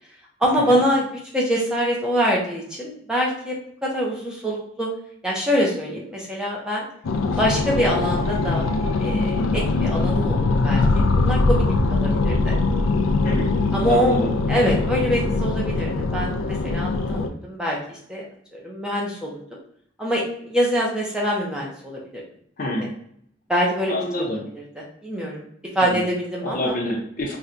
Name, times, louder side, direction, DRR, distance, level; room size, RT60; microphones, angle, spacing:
voice 1, 0.4-3.6 3.8-4.9 5.2-6.9 7.4-8.6 9.0-11.6 11.9-12.5 13.7-14.2 14.5-18.2 18.5-19.6 20.0-22.2 23.5-24.3 24.5-24.6 25.0-25.4 25.7-26.8, equal, 5° right, -4 dB, 0.6 m, -24 dB
sound 1, 7.0-17.3, left 3 dB, 85° left, 0.3 m, -22 dB
voice 2, 13.8-14.3 22.6-22.9 23.9-24.4 25.9-26.0 26.4-27.3, left 1 dB, 45° left, 0 dB, 0.6 m, -26 dB
4.3 x 2.2 x 2.5 m, 0.66 s
head